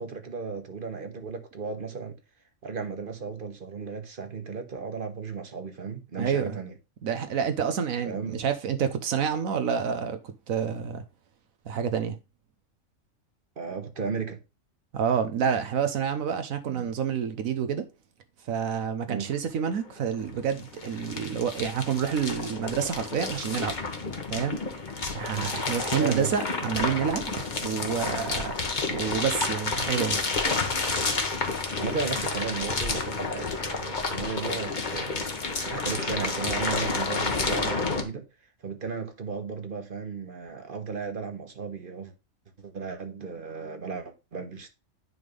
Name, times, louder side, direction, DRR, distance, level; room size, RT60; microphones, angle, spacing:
voice 1, 0.0-2.2 2.6-6.7 8.0-8.4 13.6-14.4 16.6-16.9 19.1-19.3 25.3-25.5 26.0-26.3 31.7-38.3 38.6-42.1 42.6-44.7, right 5 dB, 40° right, 1.4 m, -35 dB
voice 2, 6.2-6.6 7.0-11.0 11.7-12.2 14.9-17.9 18.5-23.7 24.3-24.6 25.1-27.2 27.6-30.2, right 7 dB, 80° right, 1.2 m, -28 dB
sound 1, 19.3-19.4 19.6-38.0, left 3 dB, 35° left, 1.2 m, -30 dB
9.8 x 3.6 x 5.3 m
omnidirectional pair, 1.4 m